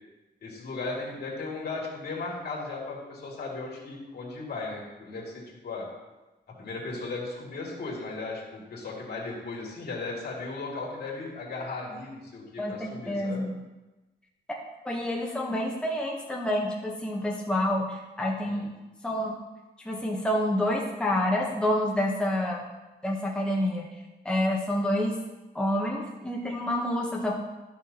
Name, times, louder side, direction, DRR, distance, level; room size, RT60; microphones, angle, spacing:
voice 1, 0.4-5.9 6.6-13.5 17.7-17.9 18.4-18.6, left 3 dB, 60° left, -3 dB, 2.4 m, -36 dB
voice 2, 12.6-13.5 14.8-18.7 19.0-19.4 19.8-22.7 23.0-23.9 24.2-25.1 25.5-27.3, left 1 dB, 5° left, -2 dB, 1.0 m, -28 dB
12.0 x 6.2 x 2.9 m, 1.1 s
cardioid pair, 120°, 18 cm